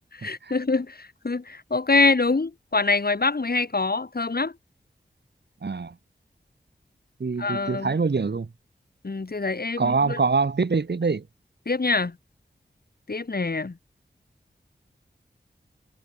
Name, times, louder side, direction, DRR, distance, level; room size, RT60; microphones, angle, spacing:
voice 1, 0.1-4.5 7.4-7.9 9.0-10.2 11.7-12.2 13.1-13.7, left 3 dB, 60° left, 4.8 m, -25 dB
voice 2, 5.6-5.9 7.2-8.5 9.8-11.2, right 4 dB, 70° right, 2.7 m, -24 dB
cardioid pair, 45°, 18 cm